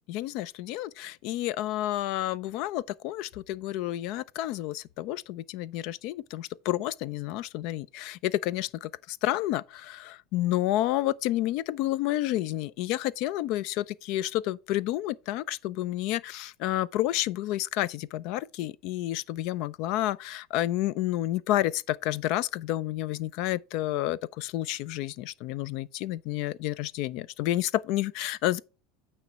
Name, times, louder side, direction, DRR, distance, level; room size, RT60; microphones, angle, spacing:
voice 1, 0.1-28.6, left 14 dB, 60° left, 0.4 m, -30 dB
8.9 x 3.1 x 5.6 m
supercardioid pair, 115°, 0 cm